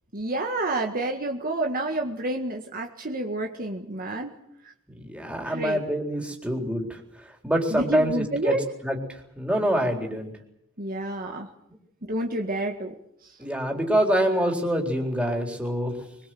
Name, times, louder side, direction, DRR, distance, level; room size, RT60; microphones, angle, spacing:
voice 1, 0.1-4.4 4.6-4.7 5.4-5.8 7.7-8.6 10.8-11.5 12.1-12.9 13.2-13.4, right 2 dB, 40° right, 2 dB, 1.8 m, -29 dB
voice 2, 4.9-8.6 8.8-10.3 13.4-16.2, equal, 5° right, 1 dB, 4.0 m, -26 dB
24.0 x 22.5 x 7.8 m, 0.79 s
head